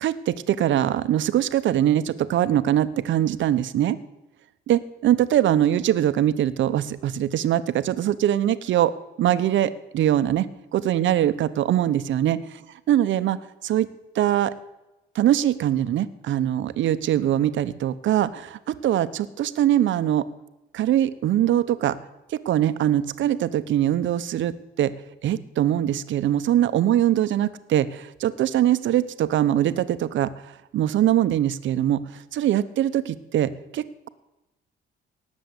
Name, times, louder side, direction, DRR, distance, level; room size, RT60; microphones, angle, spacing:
voice 1, 0.0-4.0 4.7-8.9 9.2-10.5 10.7-12.6 12.9-13.9 14.1-14.5 15.1-20.3 20.7-22.0 22.3-24.9 25.2-34.1, right 11 dB, 75° right, 14 dB, 0.9 m, -22 dB
18.5 x 7.5 x 8.2 m, 0.96 s
cardioid pair, 90°, 20 cm